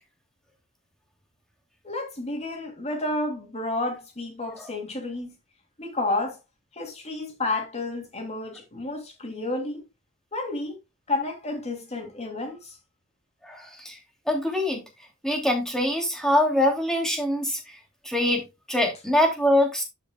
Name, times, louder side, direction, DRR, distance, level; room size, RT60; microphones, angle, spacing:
voice 1, 1.8-5.3 5.8-6.4 6.7-9.8 10.3-10.8 11.1-12.8, left 2 dB, 35° left, 2.9 m, -31 dB
voice 2, 13.4-14.0 14.3-14.8 15.2-17.6 18.0-18.4 18.7-19.8, left 1 dB, 5° left, 2.9 m, -23 dB
12.5 x 5.8 x 2.4 m
head